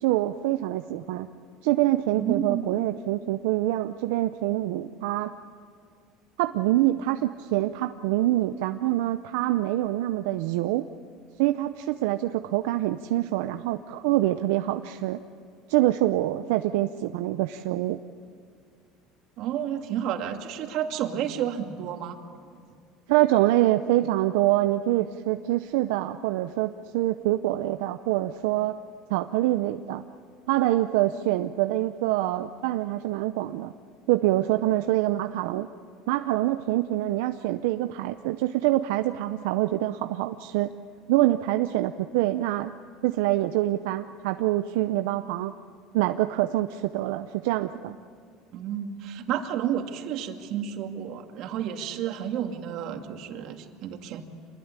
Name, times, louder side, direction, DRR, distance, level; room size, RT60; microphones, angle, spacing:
voice 1, 0.0-1.3 1.6-5.3 6.4-10.8 11.4-15.2 15.7-18.0 23.1-28.8 29.1-30.0 30.5-33.7 34.1-35.7 36.1-40.7 41.1-42.7 43.0-45.5 45.9-47.9, right 15 dB, 85° right, 8 dB, 0.7 m, -25 dB
voice 2, 2.2-2.7 19.4-22.2 48.5-54.2, right 9 dB, 60° right, 4 dB, 2.4 m, -31 dB
26.5 x 21.0 x 9.7 m, 2.2 s
supercardioid pair, 120°, 0 cm